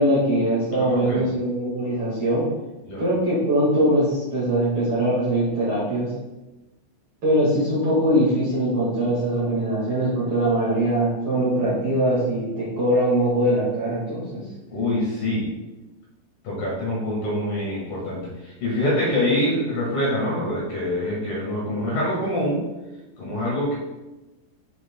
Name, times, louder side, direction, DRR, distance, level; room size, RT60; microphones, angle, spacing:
voice 1, 0.0-2.5 3.0-6.1 7.2-14.4, right 1 dB, 60° right, -9 dB, 1.3 m, -22 dB
voice 2, 0.8-1.2 2.8-3.0 14.7-15.5 16.4-22.6 23.2-23.8, left 1 dB, 60° left, -5 dB, 2.7 m, -25 dB
9.3 x 5.9 x 2.3 m, 1.1 s
omnidirectional pair, 5.7 m